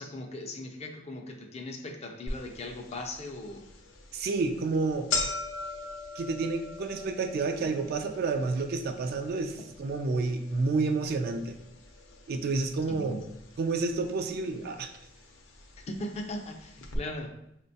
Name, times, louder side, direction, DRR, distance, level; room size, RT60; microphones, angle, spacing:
voice 1, 0.0-3.7 12.9-13.2 15.9-17.4, left 1 dB, 35° left, 3 dB, 0.4 m, -39 dB
sound 1, 2.3-2.4 2.9-3.0 3.8-4.0 4.4-4.5 4.7-12.9 13.2-13.9 14.7-14.8 15.8-15.9 16.2-16.3 16.8-17.0, left 3 dB, 90° left, 0.5 m, -39 dB
voice 2, 4.1-5.1 6.2-11.6 12.3-13.2 13.6-14.9, right 3 dB, 55° right, 6 dB, 0.3 m, -30 dB
4.5 x 2.1 x 2.6 m, 0.80 s
head